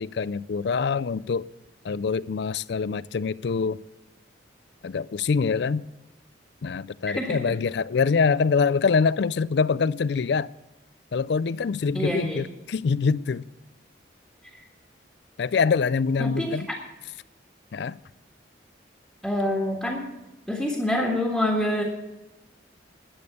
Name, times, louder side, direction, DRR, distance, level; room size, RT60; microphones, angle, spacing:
voice 1, 0.0-1.5 1.8-3.8 4.8-5.8 6.6-10.5 11.1-13.4 15.4-16.7 17.7-18.0, left 5 dB, 65° left, 0.4 m, -24 dB
voice 2, 7.1-7.4 11.9-12.4 16.2-16.6 19.2-20.1 20.5-21.8, left 1 dB, ahead, 1.6 m, -26 dB
12.0 x 8.6 x 7.0 m
head